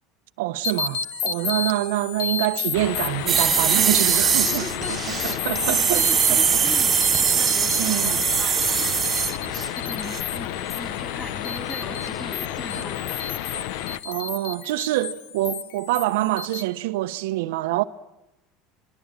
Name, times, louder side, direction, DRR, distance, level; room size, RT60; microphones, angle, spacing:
voice 1, 0.4-5.0 5.2-6.8 7.8-8.2 14.0-17.8, right 16 dB, 90° right, 0.9 m, -26 dB
sound 1, 0.6-16.6, left 7 dB, 85° left, 1.5 m, -33 dB
sound 2, 2.7-14.0, left 12 dB, 70° left, 0.9 m, -31 dB
sound 3, 3.3-9.7 10.0-10.2, right 7 dB, 25° right, 1.5 m, -22 dB
voice 2, 4.4-9.4 9.8-13.2, left 1 dB, 5° left, 3.5 m, -39 dB
24.5 x 24.0 x 9.0 m
supercardioid pair, 135°, 0 cm